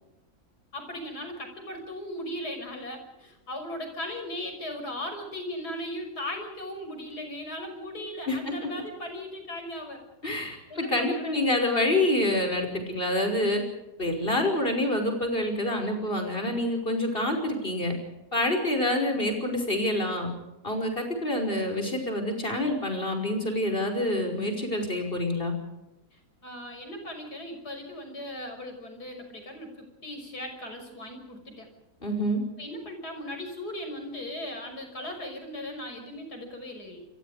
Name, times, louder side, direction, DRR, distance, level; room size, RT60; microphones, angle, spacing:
voice 1, 0.7-10.0 10.7-11.4 26.1-31.7 32.6-37.0, left 1 dB, 85° left, 5 dB, 6.6 m, -38 dB
voice 2, 10.2-13.6 14.0-17.9 18.3-20.3 20.6-25.5 32.0-32.4, left 1 dB, 35° left, 4 dB, 5.7 m, -27 dB
29.0 x 23.0 x 5.0 m, 0.97 s
omnidirectional pair, 1.6 m